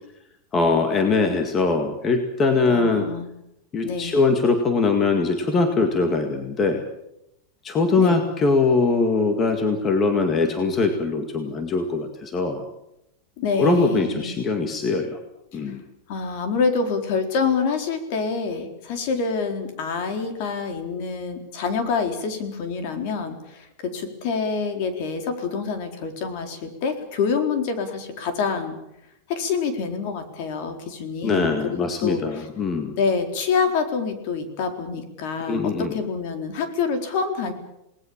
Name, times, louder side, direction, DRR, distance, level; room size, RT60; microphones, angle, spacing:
voice 1, 0.5-3.1 3.7-6.8 7.6-12.7 13.6-15.2 15.5-15.8 31.2-32.9 35.5-35.9, left 3 dB, 20° left, 5 dB, 2.0 m, -22 dB
voice 2, 2.7-3.3 3.8-4.2 8.0-8.2 13.4-14.3 15.5-15.7 16.1-28.7 29.3-32.5 33.0-37.5, left 5 dB, 50° left, 6 dB, 4.2 m, -26 dB
28.5 x 19.5 x 7.3 m, 0.83 s
supercardioid pair, 160°, 0 cm